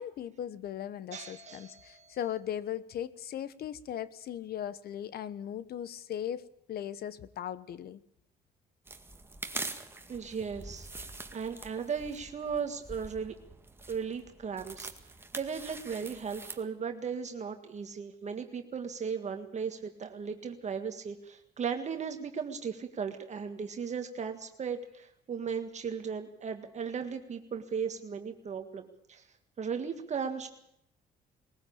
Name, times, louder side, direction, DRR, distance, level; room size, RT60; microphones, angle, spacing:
voice 1, 0.0-8.0, left 10 dB, 60° left, 17 dB, 1.1 m, -38 dB
voice 2, 1.1-2.2 10.1-13.3 13.9-14.9 15.3-29.3 29.6-30.5, right 6 dB, 40° right, 6 dB, 1.7 m, -37 dB
sound 1, 8.9-16.6, right 2 dB, 15° right, 2.0 m, -44 dB
21.0 x 15.0 x 8.7 m, 0.76 s
cardioid pair, 105°, 18 cm